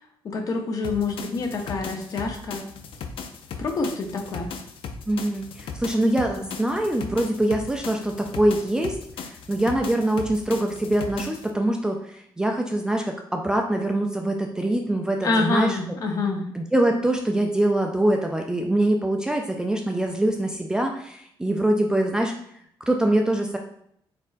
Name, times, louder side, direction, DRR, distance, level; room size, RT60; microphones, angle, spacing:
voice 1, 0.2-2.6 3.6-4.5 15.2-16.4, left 3 dB, 45° left, 3 dB, 0.7 m, -26 dB
sound 1, 0.8-11.5, left 5 dB, 85° left, 0.5 m, -37 dB
voice 2, 5.1-15.8 16.5-22.3 22.9-23.6, right 1 dB, 10° right, 2 dB, 0.3 m, -24 dB
4.3 x 4.1 x 2.5 m, 0.69 s
wide cardioid pair, 170°, 9 cm